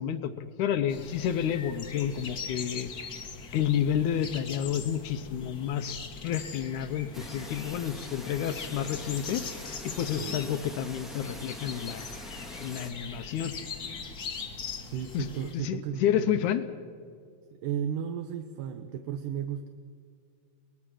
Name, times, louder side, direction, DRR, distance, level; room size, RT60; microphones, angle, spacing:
voice 1, 0.0-2.9 3.5-9.5 9.8-12.1 12.6-13.5 15.1-15.3 15.5-16.6, left 9 dB, 75° left, 11 dB, 2.0 m, -30 dB
sound 1, 0.9-15.5, left 5 dB, 60° left, 1.0 m, -41 dB
sound 2, 7.1-12.9, left 1 dB, ahead, 0.5 m, -44 dB
voice 2, 14.8-16.5 17.6-19.7, right 8 dB, 75° right, 7 dB, 2.3 m, -34 dB
23.0 x 19.5 x 6.3 m, 2.2 s
omnidirectional pair, 4.0 m